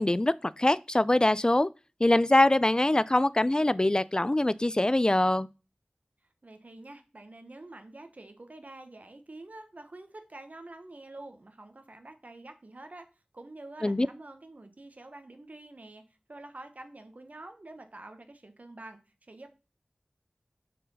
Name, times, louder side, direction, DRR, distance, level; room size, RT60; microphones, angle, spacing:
voice 1, 0.0-1.7 2.0-5.5 13.8-14.1, left 1 dB, 25° left, 0.3 m, -23 dB
voice 2, 6.4-13.1 13.3-16.0 16.3-19.5, right 2 dB, 55° right, 1.1 m, -47 dB
5.0 x 4.5 x 5.5 m
wide cardioid pair, 40°, 3 cm